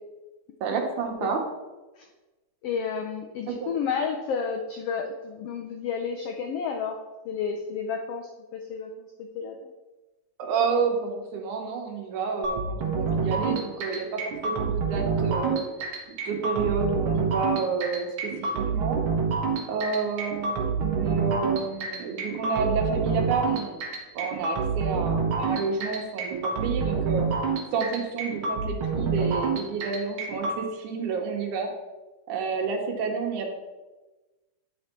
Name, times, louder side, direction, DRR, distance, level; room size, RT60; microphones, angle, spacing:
voice 1, 0.6-1.4 3.6-3.7 10.4-15.6 16.3-19.0 19.7-23.8 24.1-27.3 27.7-31.7 32.3-33.6, right 5 dB, 75° right, 2 dB, 2.4 m, -29 dB
voice 2, 2.6-9.7, left 6 dB, 90° left, 3 dB, 1.3 m, -31 dB
sound 1, 12.4-30.6, right 5 dB, 55° right, 1.7 m, -27 dB
10.0 x 4.4 x 4.3 m, 1.1 s
omnidirectional pair, 3.5 m